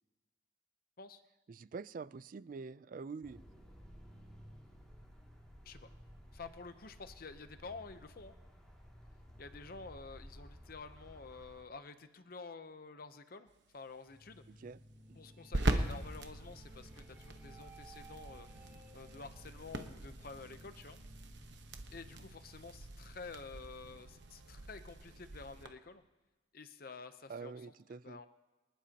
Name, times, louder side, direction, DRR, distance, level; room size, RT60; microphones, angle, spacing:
voice 1, 1.5-3.5 14.6-14.8 27.3-28.2, right 4 dB, 45° right, 18 dB, 0.3 m, -46 dB
sound 1, 3.2-11.6, equal, 5° left, 2.3 m, -56 dB
voice 2, 6.3-8.4 9.4-13.5 13.7-14.4 15.1-21.0 21.9-26.0 26.5-27.7 27.9-28.3, left 4 dB, 50° left, 9 dB, 0.7 m, -50 dB
sound 2, 13.5-25.7, right 2 dB, 60° right, 1.0 m, -42 dB
sound 3, 14.1-25.0, right 1 dB, 10° right, 2.2 m, -59 dB
24.5 x 11.5 x 2.9 m, 1.2 s
head